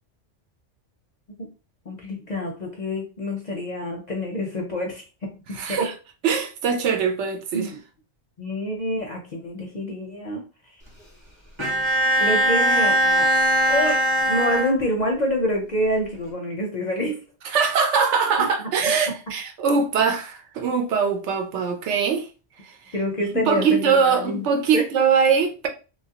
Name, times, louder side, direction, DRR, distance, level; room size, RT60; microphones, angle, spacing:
voice 1, 1.9-5.9 7.5-7.8 8.4-10.4 12.2-13.3 13.7-14.0 14.3-17.2 18.4-18.7 22.9-24.5 24.7-24.8, left 1 dB, 50° left, 0.5 m, -27 dB
voice 2, 5.5-5.9 6.2-7.7 17.4-22.3 22.6-22.9 23.3-25.7, right 6 dB, 75° right, 0.9 m, -22 dB
Bowed string instrument, 11.6-15.3, right 1 dB, 25° right, 0.9 m, -21 dB
2.8 x 2.3 x 2.8 m
omnidirectional pair, 1.2 m